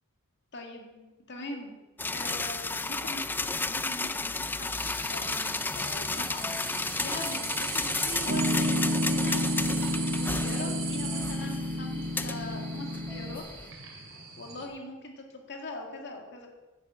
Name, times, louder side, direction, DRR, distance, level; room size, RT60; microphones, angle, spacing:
voice 1, 0.5-1.8 2.1-6.5 7.0-13.4 14.0-16.5, left 2 dB, 50° left, 1 dB, 2.0 m, -42 dB
sound 1, 2.0-13.7, left 3 dB, 10° left, 0.3 m, -33 dB
sound 2, 4.7-14.7, right 5 dB, 60° right, 2.7 m, -39 dB
Piano, 8.3-13.4, left 1 dB, 45° right, 1.9 m, -30 dB
10.0 x 10.0 x 7.5 m, 1.2 s
head